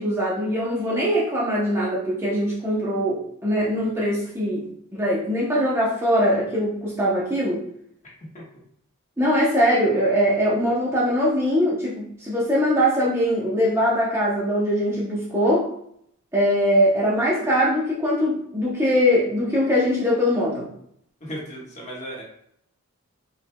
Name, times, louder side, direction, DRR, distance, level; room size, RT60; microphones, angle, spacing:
voice 1, 0.0-4.7 4.9-7.6 9.2-15.7 16.3-20.7, equal, 10° right, -6 dB, 0.7 m, -22 dB
voice 2, 21.2-22.2, equal, 35° left, -5 dB, 1.3 m, -35 dB
5.0 x 3.2 x 2.2 m, 0.71 s
head